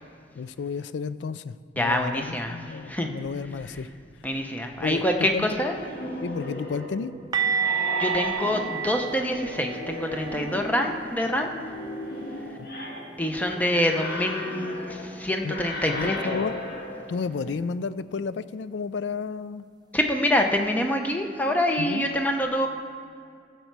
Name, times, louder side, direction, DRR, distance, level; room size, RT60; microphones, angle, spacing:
voice 1, 0.4-3.9 4.8-5.5 6.2-7.1 12.6-12.7 15.4-15.5 15.9-16.5 17.1-19.7 21.8-22.1, left 5 dB, 80° left, 15 dB, 0.4 m, -32 dB
voice 2, 1.8-3.1 3.7-3.8 4.2-5.8 8.0-11.5 13.2-16.4 19.9-22.7, left 1 dB, 10° left, 3 dB, 0.7 m, -26 dB
sound 1, 5.5-17.5, left 1 dB, 60° left, 1.7 m, -36 dB
sound 2, 7.3-13.1 13.4-13.6 13.9-14.1 17.3-17.4, right 7 dB, 25° right, 0.6 m, -32 dB
16.0 x 6.8 x 4.7 m, 2.3 s
head